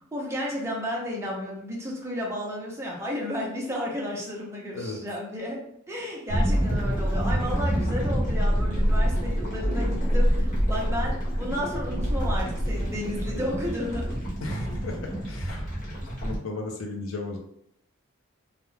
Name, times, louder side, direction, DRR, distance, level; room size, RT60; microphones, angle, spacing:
voice 1, 0.1-5.6 5.9-14.1, left 1 dB, 15° right, -3 dB, 0.6 m, -32 dB
sound 1, 6.3-16.4, equal, 40° left, 0.9 m, -26 dB
voice 2, 14.4-15.7 16.2-17.4, left 2 dB, 65° left, 2 dB, 0.5 m, -35 dB
2.3 x 2.1 x 3.1 m, 0.72 s
head